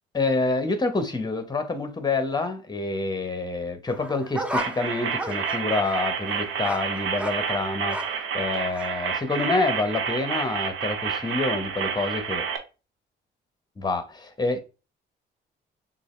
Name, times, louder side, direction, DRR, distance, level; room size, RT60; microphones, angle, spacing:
voice 1, 0.1-12.4 13.8-14.6, left 3 dB, 20° left, 0.9 m, -27 dB
sound 1, 3.9-8.3 8.7-8.9, equal, 5° right, 0.6 m, -35 dB
sound 2, 4.6-12.6, right 7 dB, 90° right, 0.9 m, -29 dB
6.2 x 2.5 x 3.2 m
cardioid pair, 90°, 20 cm